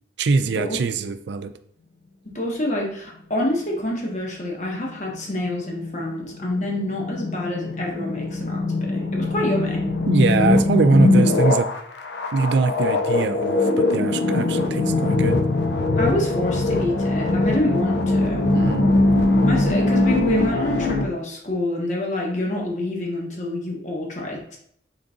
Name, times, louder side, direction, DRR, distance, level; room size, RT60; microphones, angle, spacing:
voice 1, 0.2-1.5 10.1-11.7 12.3-15.4 18.5-18.9, right 4 dB, 80° right, 10 dB, 0.4 m, -22 dB
voice 2, 2.2-8.6 8.9-9.8 16.0-18.5 19.4-24.6, left 1 dB, 40° left, -1 dB, 1.0 m, -27 dB
sound 1, 4.6-21.1, left 2 dB, 75° left, 0.5 m, -21 dB
3.8 x 3.8 x 3.6 m, 0.66 s
head